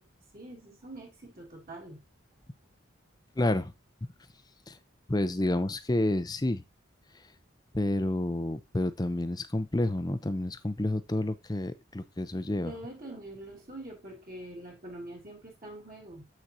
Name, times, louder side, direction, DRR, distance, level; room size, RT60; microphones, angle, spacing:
voice 1, 0.3-2.0 12.5-16.3, right 1 dB, 45° right, 2.5 m, -44 dB
voice 2, 3.4-3.7 4.7-4.8 5.1-6.6 7.7-12.7, left 1 dB, 20° left, 0.6 m, -29 dB
8.0 x 6.1 x 2.8 m
head